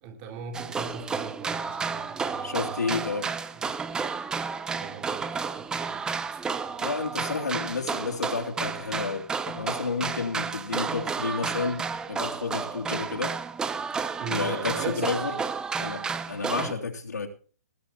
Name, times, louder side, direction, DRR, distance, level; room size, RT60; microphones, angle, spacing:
voice 1, 0.0-2.8 3.5-3.6 4.7-6.5 14.2-15.2 16.6-16.8, right 6 dB, 30° right, 4 dB, 3.6 m, -39 dB
sound 1, 0.5-16.7, right 5 dB, 10° right, 0.6 m, -32 dB
voice 2, 2.4-3.3 6.8-13.3 14.3-15.4 15.8-17.3, left 4 dB, 85° left, 1 dB, 3.2 m, -31 dB
19.0 x 9.1 x 4.4 m, 0.39 s
hypercardioid pair, 140°, 9 cm